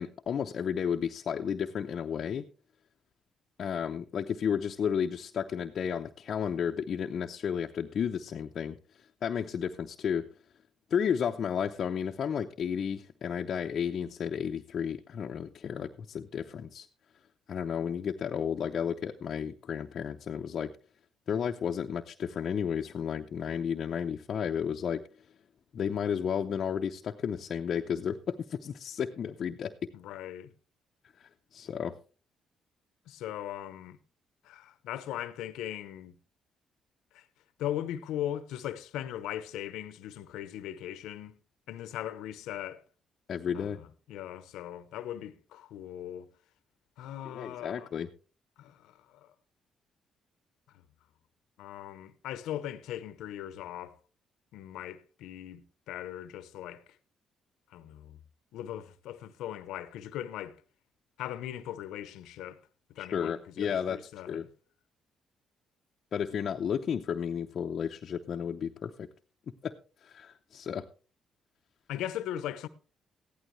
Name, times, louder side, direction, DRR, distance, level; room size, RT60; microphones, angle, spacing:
voice 1, 0.0-2.5 3.6-8.8 9.2-10.3 10.9-16.9 17.5-20.7 21.3-25.1 25.7-29.7 31.2-32.0 43.3-43.8 47.2-48.1 63.0-64.0 64.3-64.5 66.1-69.1 69.6-69.8 70.0-70.9, left 7 dB, 55° left, 0.7 m, -32 dB
voice 2, 29.9-30.5 33.1-34.0 34.4-36.1 37.1-37.3 37.6-41.4 41.7-42.8 43.5-46.3 47.0-47.9 48.6-49.3 50.7-50.8 51.6-54.0 54.5-56.8 57.7-58.2 58.5-60.6 61.2-62.6 62.9-64.4 71.9-72.7, left 11 dB, 90° left, 0.8 m, -39 dB
15.0 x 11.5 x 3.2 m
cardioid pair, 90°, 0 cm